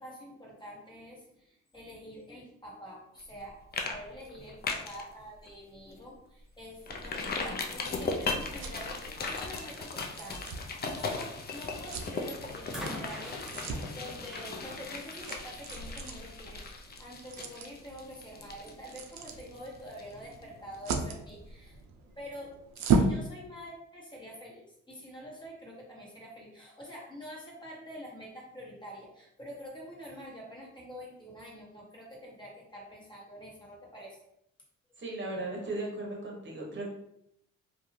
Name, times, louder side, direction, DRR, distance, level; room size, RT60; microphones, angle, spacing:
voice 1, 0.0-21.8 22.1-34.2, equal, 15° left, -4 dB, 1.2 m, -46 dB
sound 1, 3.2-3.4 3.7-3.9 4.2-5.0 5.5-5.6 6.0-6.1 6.9-20.4 20.7-20.8, left 4 dB, 35° left, 0.4 m, -37 dB
sound 2, 6.9-23.2, right 4 dB, 65° right, 0.5 m, -37 dB
sound 3, 11.8-12.1 12.7-16.0 17.0-17.1, left 1 dB, ahead, 0.8 m, -44 dB
voice 2, 35.0-36.9, right 2 dB, 40° right, -1 dB, 1.0 m, -36 dB
2.5 x 2.3 x 3.1 m, 0.77 s
cardioid pair, 90°, 30 cm